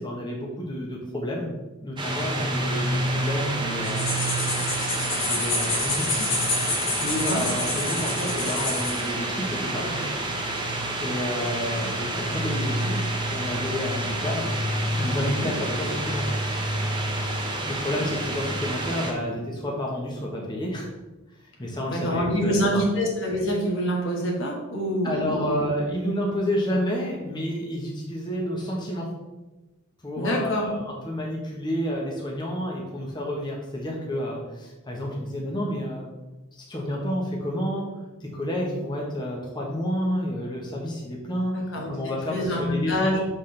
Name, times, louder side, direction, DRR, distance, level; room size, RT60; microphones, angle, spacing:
voice 1, 0.0-1.5 1.8-6.5 7.0-10.3 11.0-14.5 14.9-16.4 17.3-20.9 21.6-22.8 25.0-29.1 30.0-36.0 36.5-37.9 38.2-41.6 41.9-43.2, equal, 20° left, -2 dB, 1.1 m, -30 dB
sound 1, 2.0-19.1, right 1 dB, 25° right, 1.0 m, -28 dB
sound 2, 3.8-9.1, left 3 dB, 85° left, 2.3 m, -28 dB
voice 2, 7.0-7.4 15.2-15.5 21.9-25.6 30.2-30.6 41.5-43.2, equal, 70° left, -1 dB, 1.7 m, -26 dB
6.3 x 5.9 x 3.3 m, 1.1 s
head